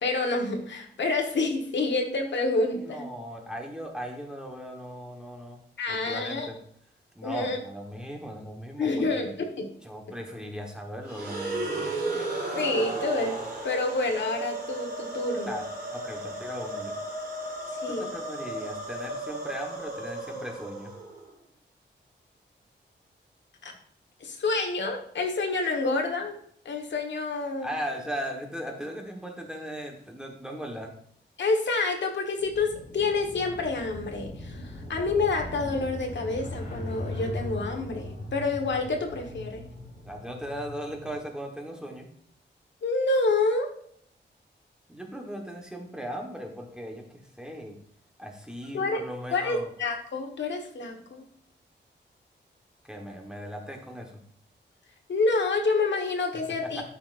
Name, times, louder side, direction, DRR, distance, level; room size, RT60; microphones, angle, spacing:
voice 1, 0.0-3.1 5.8-6.5 7.2-7.6 8.8-9.7 12.1-12.2 12.5-13.4 13.6-15.6 17.7-18.1 23.6-23.7 24.2-26.4 26.6-27.7 31.4-39.6 42.8-43.7 48.7-49.0 49.3-51.3 55.1-56.8, left 3 dB, 75° left, 3 dB, 1.4 m, -28 dB
voice 2, 2.7-5.6 5.9-6.6 7.1-9.3 9.8-11.8 15.5-15.6 15.9-17.0 17.9-20.9 27.6-30.9 40.0-42.1 44.9-47.8 48.2-49.7 52.8-54.2, equal, 5° right, 1 dB, 1.3 m, -38 dB
sound 1, 11.0-21.3, right 2 dB, 55° right, 3.9 m, -34 dB
sound 2, 32.4-41.2, left 1 dB, 45° left, 2.5 m, -39 dB
13.0 x 5.7 x 2.6 m, 0.64 s
wide cardioid pair, 160°, 19 cm